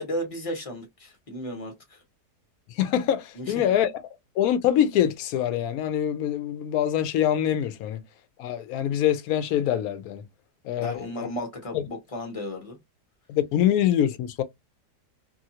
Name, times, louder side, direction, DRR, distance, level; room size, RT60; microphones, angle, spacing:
voice 1, 0.0-2.0 3.4-3.6 10.8-12.8, equal, 25° left, 0.8 m, -34 dB
voice 2, 2.7-3.9 4.4-8.0 8.4-10.2 10.6-11.3 13.3-14.4, left 10 dB, 70° left, 1.0 m, -24 dB
2.7 x 2.6 x 2.7 m
omnidirectional pair, 1.8 m